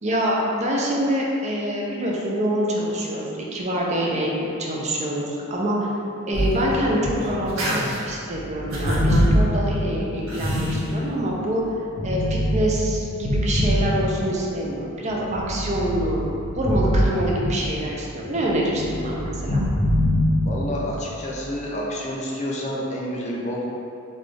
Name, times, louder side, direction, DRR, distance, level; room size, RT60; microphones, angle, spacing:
voice 1, 0.0-5.8 6.3-11.6 12.0-16.3 16.6-19.6, equal, 30° right, -3 dB, 0.5 m, -25 dB
sound 1, 6.3-11.4 12.0-14.6 15.1-18.0 18.2-20.9, equal, 85° left, 1.2 m, -24 dB
sound 2, 6.3-6.8 7.2-8.0 8.7-9.3 10.3-10.8, right 1 dB, 70° right, 0.7 m, -29 dB
voice 2, 20.4-23.6, equal, 35° left, -4 dB, 0.5 m, -29 dB
3.9 x 2.3 x 3.3 m, 2.6 s
head